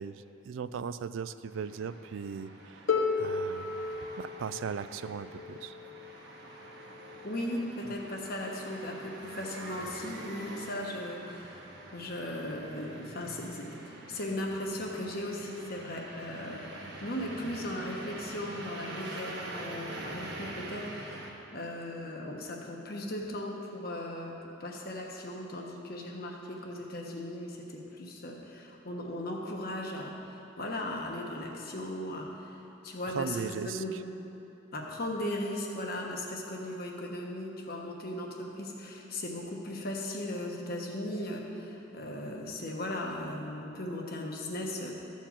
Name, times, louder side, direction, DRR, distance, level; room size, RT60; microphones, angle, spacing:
voice 1, 0.0-2.8 3.2-3.9 4.2-5.7 33.1-34.0, right 6 dB, 80° right, 13 dB, 0.4 m, -38 dB
sound 1, 1.5-21.3, right 2 dB, 60° right, 1.3 m, -45 dB
Harp, 2.9-8.7 9.7-9.8, left 4 dB, 75° left, 0.9 m, -35 dB
voice 2, 7.2-11.6 11.9-21.2 21.5-24.3 24.6-34.1 34.7-44.9, left 1 dB, 50° left, 0 dB, 1.2 m, -37 dB
13.0 x 4.5 x 7.4 m, 2.9 s
head